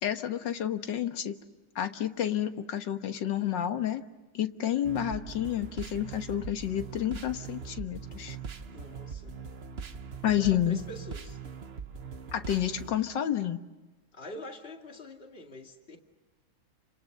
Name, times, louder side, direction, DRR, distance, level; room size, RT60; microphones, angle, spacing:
voice 1, 0.0-1.4 1.8-4.0 4.3-8.4 10.2-10.8 12.3-13.6, left 10 dB, 65° left, 8 dB, 1.9 m, -30 dB
sound 1, 4.8-12.9, right 6 dB, 45° right, 0.9 m, -41 dB
voice 2, 8.7-9.3 10.4-11.4 14.1-16.0, left 1 dB, 30° left, 3 dB, 2.5 m, -45 dB
30.0 x 27.0 x 6.7 m, 1.1 s
omnidirectional pair, 2.2 m